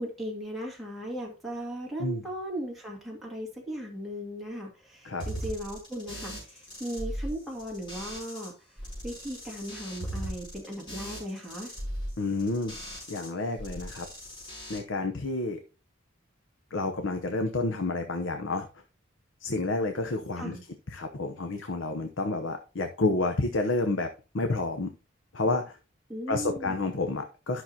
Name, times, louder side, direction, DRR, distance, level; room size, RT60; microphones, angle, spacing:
voice 1, 0.0-6.4 6.8-8.5 9.0-11.7 20.4-20.6 26.1-26.8, equal, ahead, -3 dB, 2.2 m, -37 dB
sound 1, 5.2-8.5 8.8-13.3 13.6-14.8, equal, 25° left, 5.6 m, -38 dB
voice 2, 12.2-12.8 13.1-14.1 14.7-15.6 16.7-18.7 19.4-20.6 20.9-24.1 24.3-24.9 25.3-25.8 26.3-27.6, left 2 dB, 70° left, 6 dB, 0.9 m, -29 dB
12.0 x 5.9 x 2.8 m, 0.33 s
head